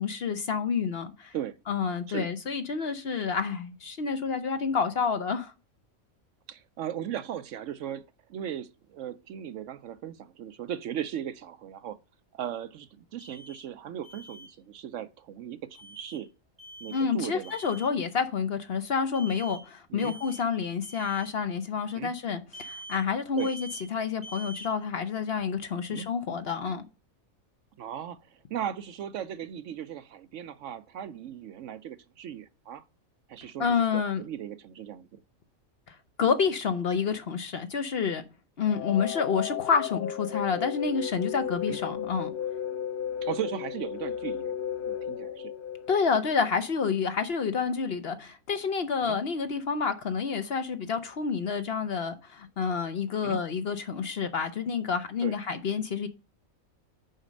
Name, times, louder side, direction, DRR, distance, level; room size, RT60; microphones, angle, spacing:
voice 1, 0.0-1.3 1.7-5.5 16.9-26.8 33.6-34.2 36.2-38.2 38.6-42.3 45.9-56.1, left 6 dB, 55° left, 0.8 m, -29 dB
voice 2, 6.5-8.0 8.3-12.0 12.3-16.3 16.8-17.6 19.9-20.1 21.9-22.1 23.4-23.5 25.9-26.1 27.8-32.8 33.3-35.2 41.7-41.8 43.2-44.5 44.8-45.5 49.0-49.2 53.2-53.4 55.2-55.3, right 10 dB, 70° right, 0.8 m, -37 dB
Alarm, 13.2-13.6 14.0-14.5 15.7-16.2 16.6-17.1 17.4-17.9 19.1-19.6 20.0-20.5 20.8-21.3 22.5-23.0 23.4-23.9 24.2-24.7, right 1 dB, 25° right, 3.0 m, -45 dB
sound 1, 38.6-46.6, left 9 dB, 90° left, 0.4 m, -34 dB
6.5 x 5.1 x 6.2 m
omnidirectional pair, 1.5 m